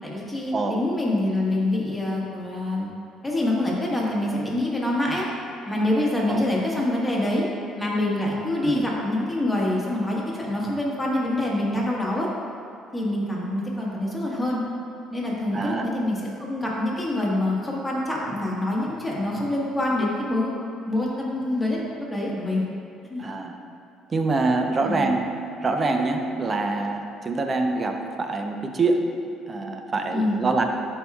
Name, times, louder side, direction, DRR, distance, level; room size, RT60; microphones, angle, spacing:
voice 1, 0.0-2.9 3.2-5.3 5.7-7.4 7.8-12.3 12.9-14.6 15.1-20.5 20.9-22.6 23.0-23.2 24.8-25.1 30.1-30.4, left 1 dB, 10° left, -4 dB, 1.5 m, -26 dB
voice 2, 15.5-15.9 23.2-23.6 24.1-25.3 25.6-29.1 29.5-30.6, right 3 dB, 30° right, 4 dB, 0.7 m, -25 dB
11.5 x 4.6 x 2.4 m, 2.7 s
cardioid pair, 105°, 0 cm